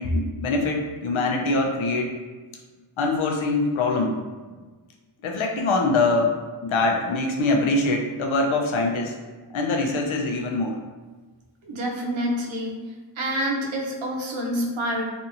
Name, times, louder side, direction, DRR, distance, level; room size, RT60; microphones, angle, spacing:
voice 1, 0.0-2.1 3.0-4.2 5.2-6.4 6.6-9.1 9.5-10.8, left 2 dB, 90° left, 2 dB, 0.6 m, -23 dB
voice 2, 11.6-12.8 13.2-15.0, equal, 90° right, -1 dB, 0.7 m, -27 dB
2.8 x 2.5 x 2.4 m, 1.4 s
wide cardioid pair, 110°, 46 cm